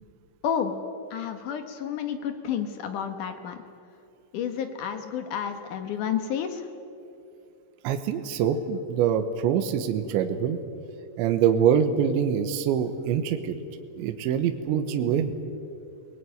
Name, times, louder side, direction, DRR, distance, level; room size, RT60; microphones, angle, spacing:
voice 1, 1.1-3.6 4.3-6.7, left 8 dB, 70° left, 7 dB, 2.0 m, -30 dB
voice 2, 7.8-10.6 11.2-13.6 14.0-15.3, right 8 dB, 75° right, 6 dB, 3.4 m, -24 dB
24.5 x 19.0 x 9.4 m, 2.5 s
omnidirectional pair, 5.5 m